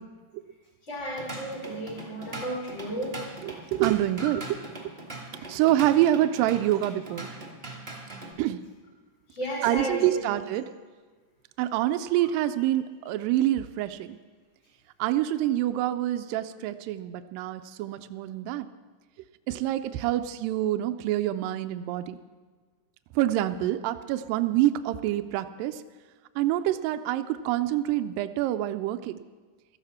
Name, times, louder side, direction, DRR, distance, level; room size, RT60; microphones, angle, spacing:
voice 1, 0.9-3.1 5.3-5.5 9.3-10.3, equal, 35° left, -6 dB, 4.9 m, -33 dB
Drum kit / Drum, 0.9-8.3, right 2 dB, 25° right, 1.0 m, -41 dB
voice 2, 3.4-4.4 4.8-4.9 5.5-7.3 8.4-8.6 9.6-10.7 11.6-14.2 15.0-18.7 19.5-22.2 23.1-25.8 26.4-29.2, right 13 dB, 85° right, 10 dB, 2.2 m, -26 dB
17.0 x 13.5 x 4.3 m, 1.4 s
omnidirectional pair, 4.0 m